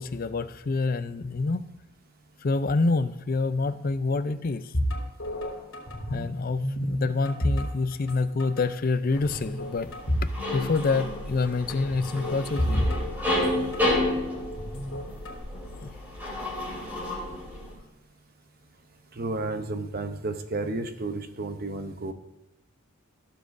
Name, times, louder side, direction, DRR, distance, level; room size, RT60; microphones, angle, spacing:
voice 1, 0.0-1.7 2.4-4.7 6.1-9.9 10.5-12.9 15.8-15.9, left 3 dB, 40° left, 11 dB, 0.4 m, -27 dB
sound 1, 4.7-6.3 6.6-8.2 8.4-8.6 9.2-10.4 10.6-10.7 11.9-14.0 14.6-15.4, equal, 75° left, 3.3 m, -29 dB
sound 2, 9.1-17.7, left 1 dB, 10° right, 3.1 m, -31 dB
voice 2, 19.2-22.1, right 2 dB, 45° right, 8 dB, 0.8 m, -32 dB
15.5 x 7.4 x 2.6 m, 1.0 s
head